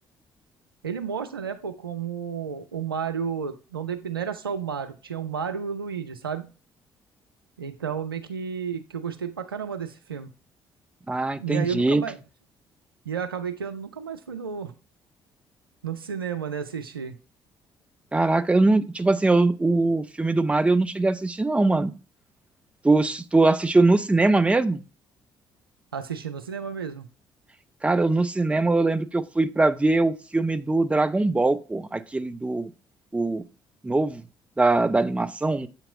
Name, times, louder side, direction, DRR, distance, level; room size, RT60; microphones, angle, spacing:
voice 1, 0.8-6.5 7.6-10.3 11.4-12.2 13.1-14.7 15.8-17.2 25.9-27.1, right 7 dB, 90° right, 0.4 m, -32 dB
voice 2, 11.1-12.0 18.1-21.9 22.8-24.8 27.8-32.7 33.1-33.4 33.8-34.2 34.6-35.7, right 2 dB, 10° right, 0.5 m, -22 dB
7.7 x 2.9 x 4.4 m
figure-of-eight pair, 45°, 12 cm